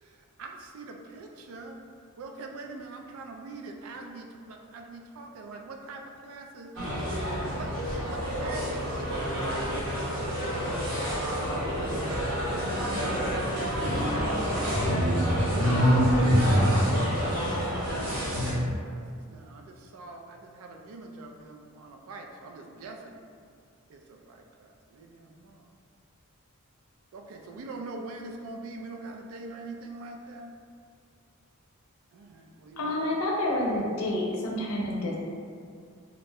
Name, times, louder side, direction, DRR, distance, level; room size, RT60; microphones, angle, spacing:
voice 1, 0.0-1.8 2.2-6.7 7.4-7.7 8.0-11.3 13.9-14.4 17.9-23.2 23.9-25.7 27.1-30.5 32.1-33.0, right 3 dB, 80° right, 3 dB, 0.3 m, -44 dB
sound 1, 6.7-18.5, equal, 60° right, 0.9 m, -27 dB
voice 2, 13.9-15.7 16.3-17.5, left 1 dB, 20° left, -3 dB, 0.4 m, -41 dB
voice 3, 32.8-35.2, left 1 dB, 80° left, -2 dB, 0.5 m, -28 dB
2.4 x 2.1 x 3.3 m, 2.2 s
head